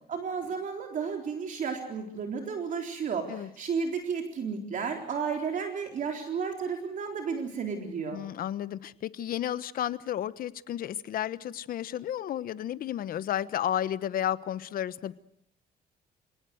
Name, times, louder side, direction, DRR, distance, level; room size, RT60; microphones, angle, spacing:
voice 1, 0.1-8.2, right 6 dB, 50° right, 3 dB, 3.9 m, -33 dB
voice 2, 8.1-15.1, left 11 dB, 60° left, 15 dB, 1.2 m, -32 dB
28.5 x 18.5 x 7.9 m, 0.72 s
cardioid pair, 110°, 17 cm